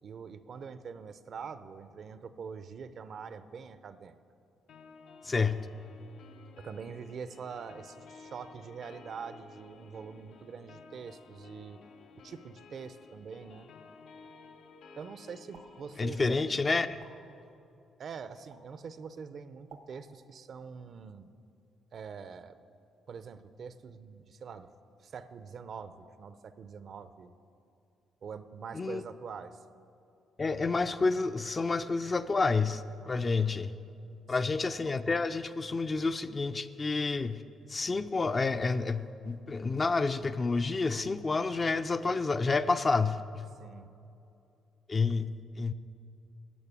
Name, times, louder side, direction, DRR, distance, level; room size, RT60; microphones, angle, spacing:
voice 1, 0.0-4.2 5.4-5.6 6.6-11.8 12.2-13.7 15.0-16.7 18.0-21.3 21.9-22.6 23.1-24.7 25.0-27.3 28.2-29.6 33.0-33.3 43.6-43.9, right 6 dB, 55° right, 12 dB, 0.6 m, -44 dB
sound 1, 4.7-16.7, left 4 dB, 80° left, 0.9 m, -54 dB
voice 2, 5.2-5.7 16.0-17.0 28.7-29.0 30.4-33.7 34.3-37.4 37.7-43.5 44.9-45.7, left 4 dB, 30° left, 10 dB, 0.4 m, -29 dB
sound 2, 15.5-15.7 17.0-17.1 18.5-18.6 19.7-19.8, right 6 dB, 85° right, 1.3 m, -52 dB
12.5 x 6.6 x 8.3 m, 2.7 s
cardioid pair, 90°, 0 cm